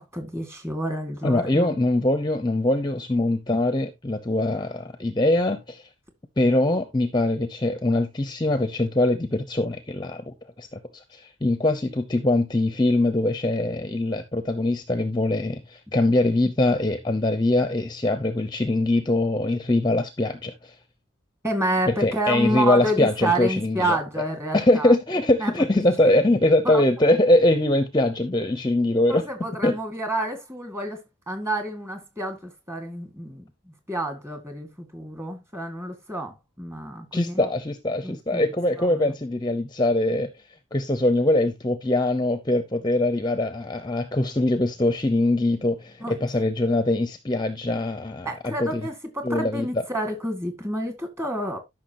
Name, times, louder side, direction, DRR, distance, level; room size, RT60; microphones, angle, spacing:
voice 1, 0.0-1.7 21.4-24.9 25.4-25.5 26.6-26.8 29.1-31.0 31.3-33.5 33.9-37.5 38.0-38.4 38.8-39.1 46.0-46.2 48.3-51.6, right 1 dB, 15° right, 2.2 m, -29 dB
voice 2, 1.2-5.8 6.4-20.7 21.9-24.0 24.5-29.3 29.6-29.8 37.1-40.3 40.7-48.9 49.2-49.8, left 1 dB, 20° left, 0.7 m, -22 dB
12.5 x 6.1 x 3.0 m
head